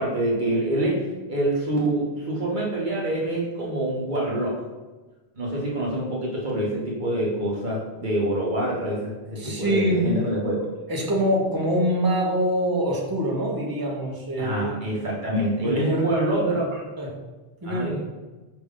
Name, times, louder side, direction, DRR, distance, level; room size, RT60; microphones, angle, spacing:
voice 1, 0.0-4.6 5.3-10.6 14.4-16.8 17.6-18.0, right 1 dB, 50° right, -3 dB, 1.1 m, -26 dB
voice 2, 9.4-10.1 10.9-14.7 15.6-16.6 17.0-17.1 17.6-17.9, right 1 dB, 25° right, -2 dB, 0.7 m, -25 dB
5.1 x 2.7 x 3.6 m, 1.2 s
omnidirectional pair, 1.1 m